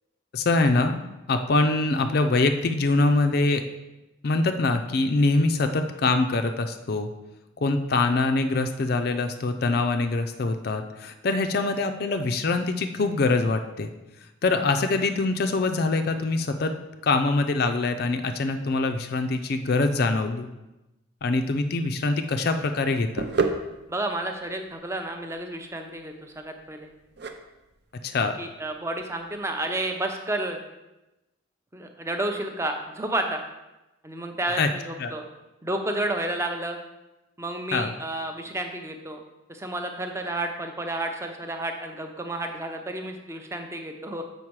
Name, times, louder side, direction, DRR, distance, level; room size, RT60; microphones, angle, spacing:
voice 1, 0.3-1.0 1.3-3.6 4.2-7.1 7.6-13.9 14.4-16.7 17.0-20.5 21.2-23.3 28.0-28.3 34.6-34.7 35.0-35.1 37.7-37.9, left 3 dB, 50° left, 7 dB, 0.4 m, -24 dB
sound 1, 21.8-29.7, right 4 dB, 50° right, 0.6 m, -34 dB
voice 2, 23.9-26.9 28.4-30.6 31.7-33.4 34.0-35.2 35.6-36.8 37.4-39.2 39.5-44.2, right 1 dB, 15° right, 5 dB, 0.6 m, -31 dB
7.3 x 5.2 x 4.7 m, 0.99 s
head